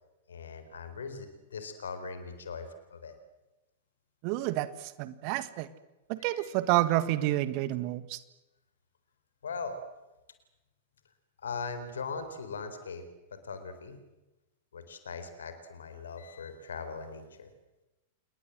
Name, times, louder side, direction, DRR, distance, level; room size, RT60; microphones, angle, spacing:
voice 1, 0.3-3.2 6.2-6.5 9.4-9.8 11.4-13.0 13.3-14.0 14.7-17.5, left 5 dB, 65° left, 10 dB, 4.1 m, -40 dB
voice 2, 4.2-5.7 6.1-8.2, right 15 dB, 40° right, 14 dB, 1.6 m, -29 dB
28.5 x 21.5 x 7.9 m, 1.0 s
figure-of-eight pair, 95°, 0 cm